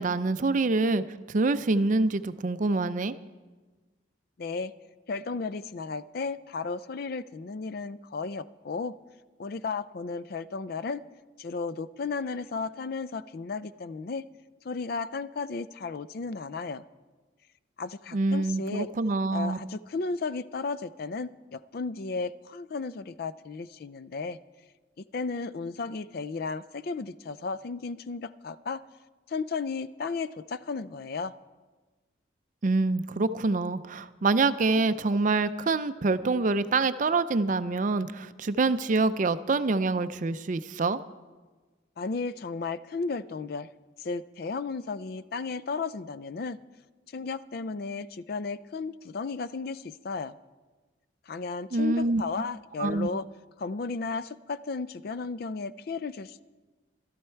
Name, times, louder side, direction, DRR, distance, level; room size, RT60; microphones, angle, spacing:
voice 1, 0.0-3.1 18.1-19.6 32.6-41.0 51.7-52.2 52.8-53.1, right 3 dB, 40° right, 12 dB, 0.4 m, -26 dB
voice 2, 4.4-4.7 5.1-8.9 9.4-11.0 11.4-14.2 14.6-16.8 17.8-18.9 19.3-24.4 25.0-28.8 29.3-31.3 42.0-43.7 44.0-46.6 47.1-50.4 51.3-53.3 53.6-56.4, left 4 dB, 50° left, 16 dB, 0.4 m, -34 dB
14.5 x 13.0 x 4.5 m, 1.3 s
head